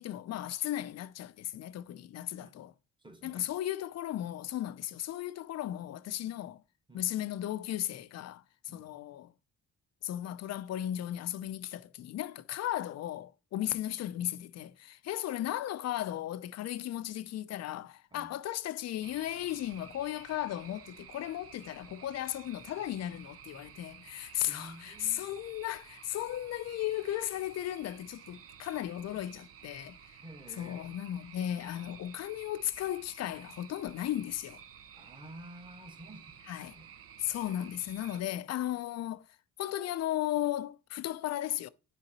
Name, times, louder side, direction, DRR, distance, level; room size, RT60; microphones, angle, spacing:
voice 1, 0.0-2.7 3.2-6.6 6.9-8.4 8.7-9.3 10.0-30.0 30.6-34.6 36.5-36.8 37.2-39.3 39.6-41.7, left 12 dB, 60° left, 0.5 m, -36 dB
voice 2, 3.0-3.5 4.7-4.8 6.9-7.1 8.7-8.9 13.6-13.8 18.1-18.3 24.4-25.3 30.2-30.9 34.9-36.9, right 1 dB, 15° right, 1.4 m, -51 dB
sound 1, 19.0-38.2, right 8 dB, 50° right, 0.6 m, -53 dB
9.8 x 3.8 x 2.9 m
cardioid pair, 90°, 30 cm